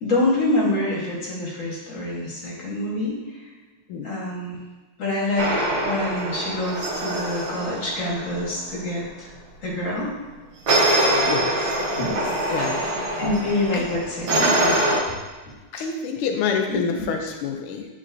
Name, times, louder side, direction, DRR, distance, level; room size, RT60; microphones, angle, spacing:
voice 1, 0.0-3.2 4.0-4.5 5.0-9.3 9.6-10.2 11.9-12.1 13.2-14.8 16.7-16.8, left 2 dB, 40° left, -3 dB, 1.5 m, -26 dB
sound 1, 5.4-8.6 10.7-15.0, right 1 dB, 65° right, 1.8 m, -24 dB
voice 2, 11.2-11.8 12.5-12.9 13.7-13.9 15.7-17.9, left 6 dB, 85° left, 4 dB, 1.5 m, -27 dB
9.6 x 3.8 x 2.6 m, 1.3 s
omnidirectional pair, 2.3 m